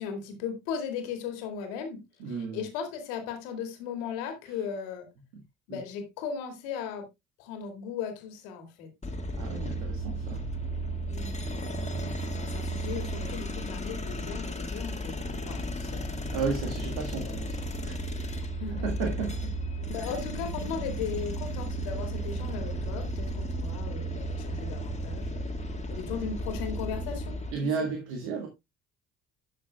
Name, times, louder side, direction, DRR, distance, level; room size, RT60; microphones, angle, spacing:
voice 1, 0.0-5.1 5.7-7.1 7.4-8.9 11.1-11.4 12.2-15.2 15.5-16.1 17.1-17.4 18.6-19.1 19.8-27.3 27.6-27.9, left 7 dB, 70° left, 2.4 m, -37 dB
voice 2, 2.2-2.7 5.3-5.4 5.7-5.8 9.4-10.5 11.8-12.2 16.3-18.1 18.7-19.5 19.9-20.1 27.5-28.5, right 5 dB, 70° right, 1.8 m, -34 dB
sound 1, 9.0-27.5, right 1 dB, 15° left, 1.9 m, -34 dB
12.5 x 6.8 x 2.3 m
figure-of-eight pair, 50°, 40 cm